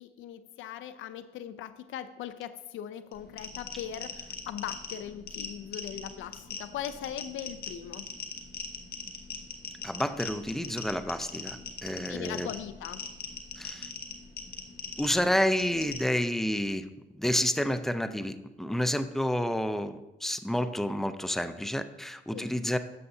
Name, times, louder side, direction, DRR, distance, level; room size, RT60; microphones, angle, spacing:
voice 1, 0.0-8.1 12.1-13.0 22.3-22.5, left 10 dB, 80° left, 11 dB, 0.5 m, -40 dB
sound 1, 3.1-16.0, left 5 dB, 50° left, 1.4 m, -41 dB
voice 2, 9.8-12.5 13.6-13.9 15.0-16.8 17.1-22.8, equal, ahead, 10 dB, 0.6 m, -29 dB
13.0 x 7.7 x 2.8 m, 1.1 s
cardioid pair, 90°, 20 cm